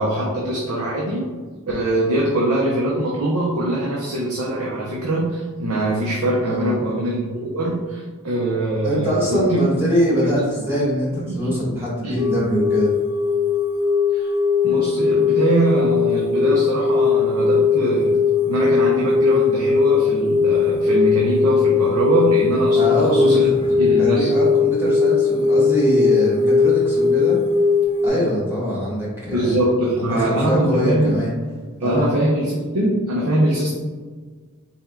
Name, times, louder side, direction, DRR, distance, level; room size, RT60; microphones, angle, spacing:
voice 1, 0.0-1.3 1.7-9.7 10.1-10.3 11.1-11.5 12.0-12.2 14.1-14.3 14.6-23.5 23.8-24.3 29.3-31.1 31.8-33.7, right 1 dB, 75° right, -3 dB, 0.7 m, -22 dB
voice 2, 6.4-6.8 8.8-12.9 22.7-23.4 23.7-27.3 28.0-29.6 30.0-31.3 31.8-32.1, equal, 10° right, -7 dB, 1.4 m, -23 dB
sound 1, 12.2-28.1, left 5 dB, 35° right, 1.4 m, -19 dB
4.3 x 3.5 x 2.3 m, 1.5 s
head